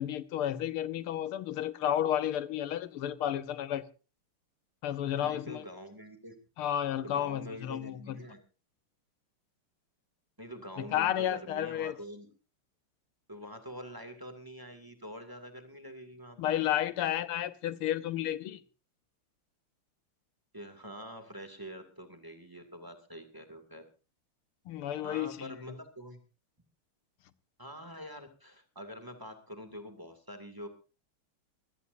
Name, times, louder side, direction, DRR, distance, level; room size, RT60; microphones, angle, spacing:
voice 1, 0.0-3.8 4.8-5.6 6.6-8.2 10.8-12.0 16.4-18.6 24.7-25.6, left 11 dB, 90° left, 1.8 m, -32 dB
voice 2, 5.2-6.3 7.0-8.4 10.4-12.3 13.3-16.5 20.5-23.8 25.0-26.2 27.6-30.7, equal, 10° right, 2.3 m, -45 dB
23.5 x 16.5 x 2.7 m
omnidirectional pair, 2.3 m